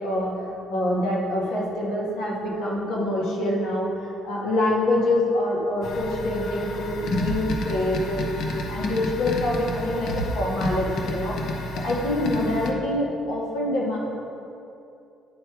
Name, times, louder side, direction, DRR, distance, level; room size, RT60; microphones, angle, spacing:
voice 1, 0.0-8.3 8.7-11.6 11.8-14.0, left 1 dB, 80° left, -4 dB, 1.6 m, -25 dB
sound 1, 5.8-12.7, left 1 dB, 55° left, 0.7 m, -30 dB
9.4 x 3.2 x 4.8 m, 2.7 s
cardioid pair, 155°, 0 cm